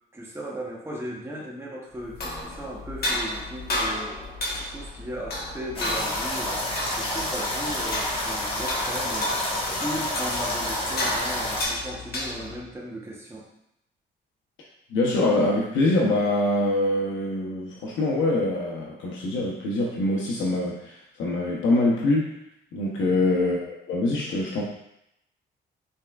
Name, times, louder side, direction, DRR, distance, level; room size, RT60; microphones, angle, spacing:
voice 1, 0.1-6.6 6.9-9.3 9.8-13.5 23.0-23.2, right 1 dB, 10° right, -3 dB, 1.0 m, -37 dB
sound 1, 2.0-12.7, left 1 dB, 50° left, 1.3 m, -33 dB
sound 2, 5.7-11.6, left 1 dB, 25° left, 1.3 m, -29 dB
voice 2, 14.9-22.3 22.7-24.6, left 2 dB, 75° left, -3 dB, 0.9 m, -24 dB
5.5 x 3.5 x 2.4 m, 0.80 s
cardioid pair, 90°, 20 cm